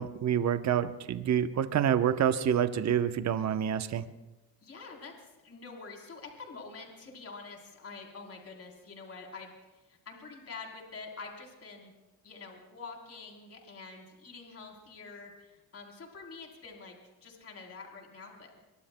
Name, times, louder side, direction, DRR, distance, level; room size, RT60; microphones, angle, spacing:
voice 1, 0.0-4.1, right 9 dB, 45° right, 10 dB, 0.9 m, -27 dB
voice 2, 4.6-11.9 12.2-18.6, left 4 dB, 35° left, 1 dB, 3.6 m, -47 dB
25.0 x 23.0 x 2.2 m, 1.1 s
cardioid pair, 110°, 39 cm